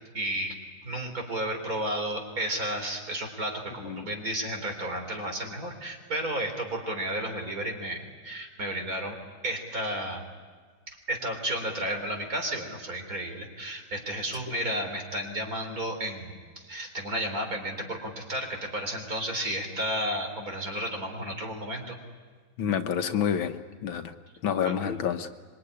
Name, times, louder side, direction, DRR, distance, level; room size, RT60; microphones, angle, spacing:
voice 1, 0.1-0.6 0.8-9.2 9.4-10.2 10.9-22.0 24.6-24.7, right 1 dB, 45° right, 4 dB, 4.1 m, -32 dB
voice 2, 22.6-23.6 23.8-24.1 24.4-25.3, left 8 dB, 80° left, 7 dB, 1.9 m, -28 dB
25.5 x 23.5 x 9.7 m, 1.5 s
omnidirectional pair, 2.2 m